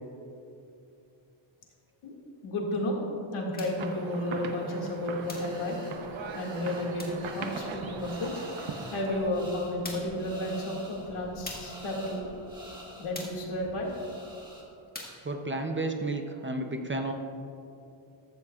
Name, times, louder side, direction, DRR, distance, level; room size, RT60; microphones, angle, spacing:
voice 1, 2.4-3.0 3.3-5.8 6.3-8.4 8.9-12.4 13.0-13.9, left 1 dB, 75° left, -1 dB, 2.2 m, -32 dB
sound 1, 3.6-3.9 5.3-5.6 7.0-7.3 9.0-9.1 9.8-10.2 11.5-11.8 13.1-13.5 14.9-15.3, left 2 dB, 20° left, 1.6 m, -42 dB
sound 2, 3.8-9.3, right 4 dB, 65° right, 0.9 m, -40 dB
sound 3, 5.2-14.6, equal, 10° right, 1.7 m, -48 dB
voice 2, 15.2-17.1, right 2 dB, 25° right, 4 dB, 0.5 m, -32 dB
14.5 x 13.0 x 2.4 m, 2.7 s
wide cardioid pair, 175°, 49 cm